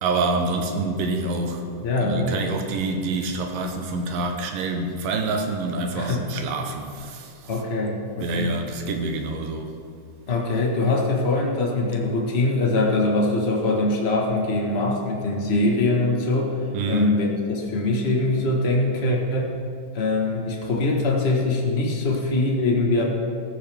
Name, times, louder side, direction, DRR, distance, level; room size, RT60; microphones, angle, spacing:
voice 1, 0.0-7.6 8.2-9.7 16.7-17.3, right 3 dB, 80° right, 4 dB, 2.8 m, -27 dB
voice 2, 1.8-2.3 5.9-6.2 7.5-8.5 10.3-16.5 16.9-19.5 19.9-23.0, left 2 dB, 50° left, -1 dB, 0.7 m, -23 dB
15.5 x 14.0 x 3.6 m, 2.3 s
omnidirectional pair, 3.9 m